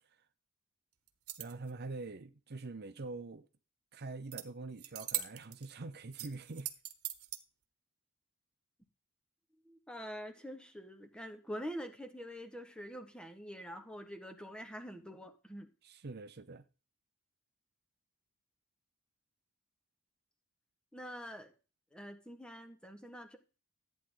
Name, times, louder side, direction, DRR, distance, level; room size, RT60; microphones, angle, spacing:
sound 1, 1.1-1.7 4.3-4.4 4.8-5.7 6.1-7.4, right 13 dB, 90° right, 1.2 m, -40 dB
voice 1, 1.4-3.5 3.9-6.7 15.8-16.6, right 3 dB, 50° right, 0.7 m, -44 dB
voice 2, 9.6-15.7 20.9-21.5 21.9-23.4, equal, 5° left, 1.5 m, -45 dB
14.5 x 9.1 x 3.9 m
head